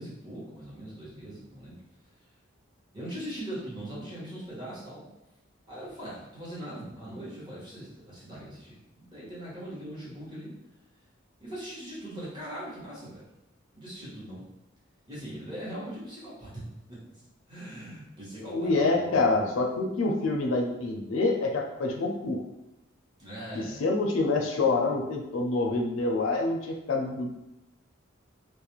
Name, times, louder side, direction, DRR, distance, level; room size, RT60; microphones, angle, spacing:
voice 1, 0.0-1.8 2.9-5.1 5.7-10.5 11.4-13.2 13.7-14.5 15.1-16.6 16.9-19.5 23.2-23.8, right 1 dB, 25° right, -8 dB, 1.0 m, -41 dB
voice 2, 18.4-22.4 23.8-27.3, left 3 dB, 70° left, 2 dB, 0.4 m, -26 dB
2.3 x 2.1 x 2.9 m, 0.91 s
head